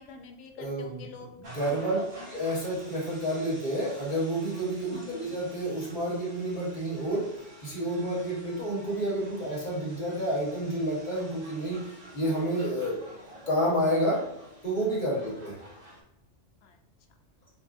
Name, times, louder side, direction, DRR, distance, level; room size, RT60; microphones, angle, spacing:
voice 1, 0.0-1.3 1.7-2.3 4.9-5.4 15.2-15.4 16.6-16.8, left 5 dB, 75° left, 5 dB, 0.9 m, -46 dB
voice 2, 0.6-1.0 1.4-2.0 2.3-7.3 7.6-13.0 13.5-14.2 14.6-15.5, right 1 dB, 40° left, -5 dB, 1.2 m, -29 dB
sound 1, 1.4-16.0, equal, 50° right, 1.1 m, -49 dB
4.6 x 2.4 x 2.4 m, 0.85 s
omnidirectional pair, 1.3 m